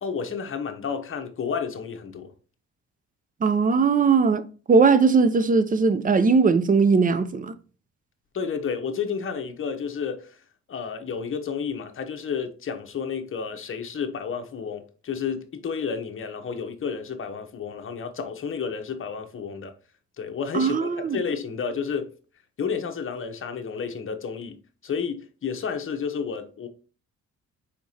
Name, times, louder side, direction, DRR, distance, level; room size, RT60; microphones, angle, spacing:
voice 1, 0.0-2.3 8.3-10.4 10.7-19.7 20.2-22.1 22.6-24.6 24.8-26.7, left 6 dB, 45° left, 0.9 m, -31 dB
voice 2, 3.4-7.5 20.5-21.2, right 5 dB, 30° right, 0.5 m, -19 dB
4.5 x 4.3 x 2.7 m
cardioid pair, 90°, 30 cm